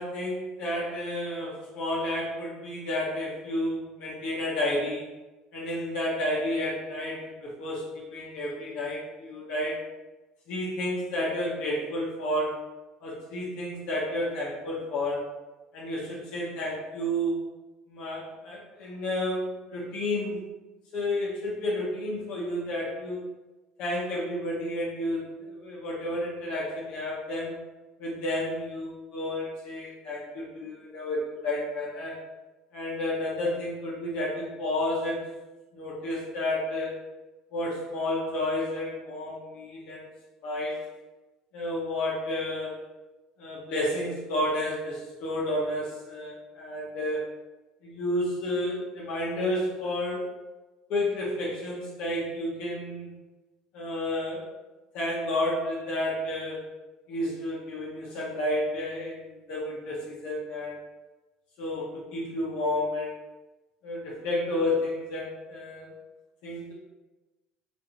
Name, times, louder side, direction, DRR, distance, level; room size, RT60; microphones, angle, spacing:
voice 1, 0.0-5.1 5.5-9.9 10.5-12.6 13.0-15.3 15.7-17.5 17.9-20.4 20.9-23.3 23.8-27.6 28.0-32.2 32.7-35.3 35.7-36.9 37.5-40.1 40.4-40.9 41.5-42.8 43.4-47.2 47.8-50.3 50.9-53.1 53.7-54.4 54.9-56.6 57.1-60.7 61.6-63.1 63.8-65.9 66.4-66.7, left 1 dB, 60° left, -5 dB, 0.9 m, -31 dB
4.2 x 2.6 x 3.0 m, 1.1 s
cardioid pair, 150°, 2 cm